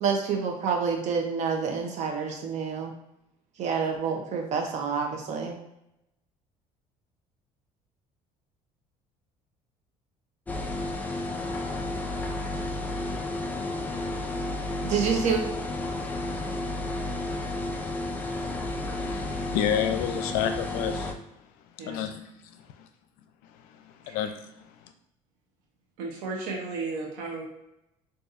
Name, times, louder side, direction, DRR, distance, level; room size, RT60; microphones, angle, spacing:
voice 1, 0.0-2.9 3.6-5.6 14.7-15.4, right 6 dB, 55° right, 3 dB, 0.8 m, -28 dB
sound 1, 10.5-21.1, left 2 dB, 10° left, 0.4 m, -32 dB
voice 2, 19.0-21.1 21.8-22.9 23.6-24.9, left 9 dB, 85° left, 8 dB, 0.4 m, -31 dB
voice 3, 26.0-27.5, right 3 dB, 85° right, -1 dB, 0.7 m, -34 dB
4.0 x 2.6 x 2.5 m, 0.84 s
cardioid pair, 110°, 14 cm